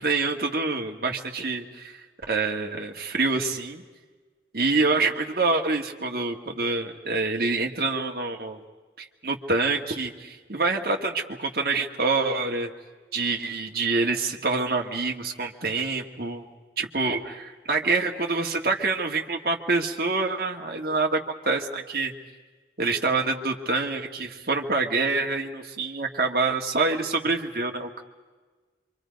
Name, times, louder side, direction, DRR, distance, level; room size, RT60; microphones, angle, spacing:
voice 1, 0.0-2.0 2.3-3.8 4.5-8.6 9.0-12.7 13.1-16.5 16.8-21.2 21.5-22.1 22.8-28.0, right 3 dB, 55° right, 2 dB, 1.8 m, -26 dB
26.5 x 25.5 x 5.3 m, 1.4 s
head